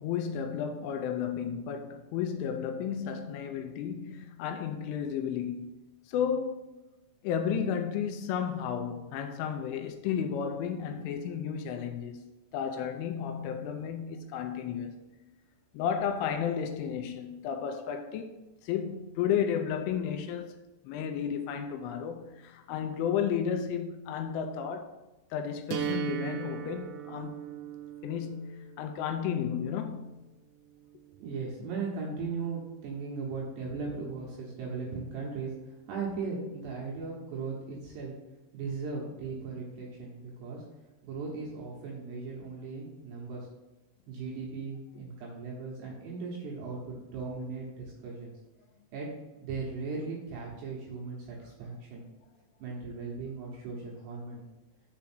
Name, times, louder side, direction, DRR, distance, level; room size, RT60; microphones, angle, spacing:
voice 1, 0.0-5.7 6.1-6.7 7.2-15.0 15.7-18.4 18.6-20.5 20.8-24.9 25.3-27.4 28.0-30.2, left 8 dB, 85° left, 2.9 m, -33 dB
sound 1, 25.7-31.7, right 12 dB, 90° right, 2.5 m, -40 dB
voice 2, 31.2-35.5 35.9-38.1 38.5-40.6 41.0-43.5 44.1-48.3 48.9-49.1 49.4-52.1 52.6-54.4, right 4 dB, 70° right, 2.7 m, -37 dB
6.9 x 4.8 x 6.0 m
omnidirectional pair, 6.0 m